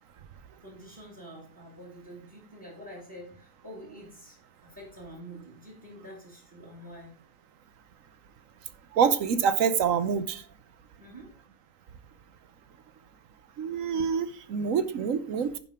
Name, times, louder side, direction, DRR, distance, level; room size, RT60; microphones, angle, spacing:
voice 1, 0.6-7.1 11.0-11.3, equal, 10° right, 2.2 m, -47 dB
voice 2, 8.9-10.4 13.6-15.6, right 7 dB, 60° right, 1.1 m, -26 dB
10.0 x 5.4 x 4.9 m
omnidirectional pair, 1.7 m